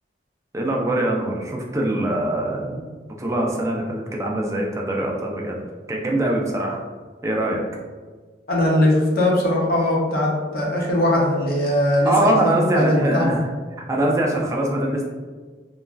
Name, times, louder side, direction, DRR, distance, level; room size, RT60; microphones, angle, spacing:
voice 1, 0.5-2.8 3.2-5.6 5.9-6.8 7.2-7.6 12.0-13.5 13.8-15.0, right 1 dB, 15° right, -1 dB, 0.3 m, -23 dB
voice 2, 8.5-13.4, left 1 dB, 55° left, -3 dB, 0.6 m, -20 dB
3.0 x 2.3 x 2.4 m, 1.4 s
head